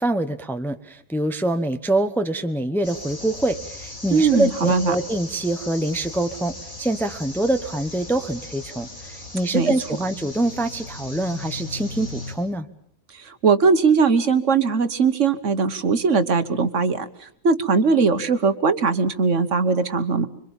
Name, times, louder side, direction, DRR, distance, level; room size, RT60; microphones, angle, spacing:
voice 1, 0.0-12.7, right 1 dB, ahead, 8 dB, 0.9 m, -25 dB
sound 1, 2.8-12.3, left 2 dB, 75° left, 6.0 m, -38 dB
voice 2, 4.1-4.9 9.5-9.7 13.1-20.3, right 5 dB, 60° right, 10 dB, 1.5 m, -20 dB
26.0 x 24.0 x 7.2 m, 0.63 s
omnidirectional pair, 1.5 m